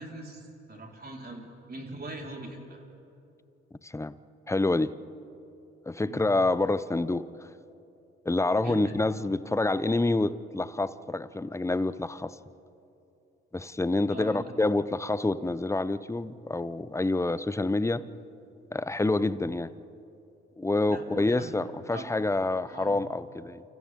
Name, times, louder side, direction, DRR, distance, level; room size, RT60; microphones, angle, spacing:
voice 1, 0.0-1.4 1.7-2.8 6.0-6.3 8.6-9.0 14.1-14.5 20.9-21.5 21.9-22.1 22.7-23.0, right 1 dB, 30° right, -1 dB, 4.8 m, -41 dB
voice 2, 3.8-4.2 4.5-4.9 5.9-7.3 8.3-12.3 13.5-18.0 18.7-19.7 20.6-23.6, left 2 dB, 10° left, 16 dB, 0.8 m, -27 dB
29.0 x 26.0 x 3.8 m, 2.7 s
hypercardioid pair, 45°, 31 cm